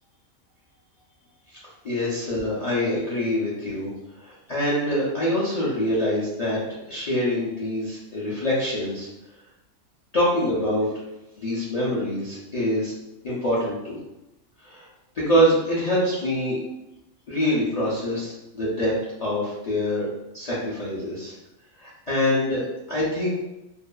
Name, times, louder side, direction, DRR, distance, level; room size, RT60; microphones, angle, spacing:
voice 1, 1.8-3.9 4.2-9.1 10.1-10.9 11.4-12.9 13.2-14.0 14.6-14.9 15.2-16.6 17.3-20.1 20.3-21.3 21.8-22.6 22.9-23.3, equal, 50° left, -8 dB, 0.4 m, -25 dB
2.6 x 2.3 x 2.2 m, 0.93 s
omnidirectional pair, 1.4 m